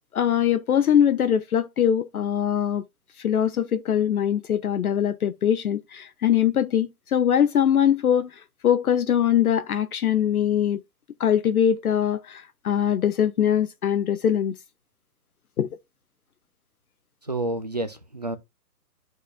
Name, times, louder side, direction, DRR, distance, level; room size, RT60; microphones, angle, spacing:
voice 1, 0.1-2.8 3.2-10.8 11.2-14.6 15.6-15.7, left 9 dB, 65° left, 0.7 m, -22 dB
voice 2, 17.3-18.4, right 2 dB, 30° right, 0.4 m, -29 dB
12.0 x 4.1 x 2.4 m
figure-of-eight pair, 140°, 48 cm